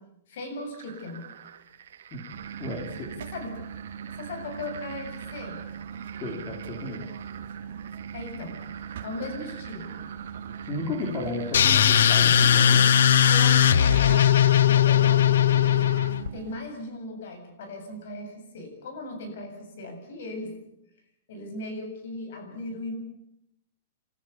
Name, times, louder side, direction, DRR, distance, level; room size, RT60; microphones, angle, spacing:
voice 1, 0.3-1.3 3.2-3.6 4.2-5.6 8.1-8.6 9.0-10.0 13.3-14.3 14.7-15.9 16.3-20.5 21.3-23.0, left 2 dB, 65° left, 5 dB, 7.7 m, -38 dB
sound 1, 0.7-16.3, right 8 dB, 75° right, 2.7 m, -46 dB
sound 2, 2.3-16.6, right 7 dB, 60° right, 2.3 m, -40 dB
voice 2, 2.6-3.1 6.2-7.0 10.7-12.9, left 2 dB, 25° left, 0 dB, 3.6 m, -33 dB
sound 3, 11.5-16.3, left 9 dB, 85° left, 0.8 m, -19 dB
30.0 x 13.5 x 8.4 m, 0.82 s
supercardioid pair, 170°, 0 cm